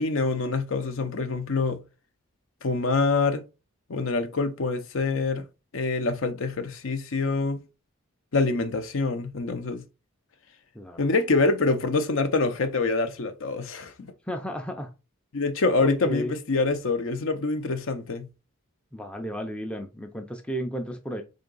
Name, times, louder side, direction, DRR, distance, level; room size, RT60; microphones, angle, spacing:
voice 1, 0.0-1.8 2.6-3.4 3.9-5.4 5.7-7.6 8.3-9.8 11.0-14.1 15.3-18.3, left 3 dB, 60° left, 0.6 m, -25 dB
voice 2, 10.7-11.1 14.3-14.9 15.8-16.3 18.9-21.2, equal, 5° left, 0.4 m, -33 dB
3.8 x 3.5 x 3.8 m
head